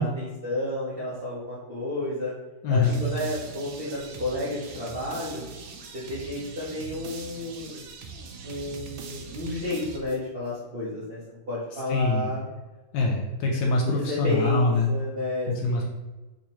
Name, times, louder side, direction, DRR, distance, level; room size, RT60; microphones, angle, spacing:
voice 1, 0.0-2.3 2.7-5.5 5.9-7.8 8.4-12.5 13.8-15.8, left 1 dB, 60° right, -8 dB, 0.6 m, -31 dB
voice 2, 2.6-3.0 11.9-12.3 12.9-14.9 15.6-15.9, left 3 dB, 75° left, -2 dB, 1.1 m, -24 dB
sound 1, 2.8-10.5, right 5 dB, 80° right, 1.3 m, -42 dB
3.8 x 2.7 x 2.9 m, 1.1 s
omnidirectional pair, 2.3 m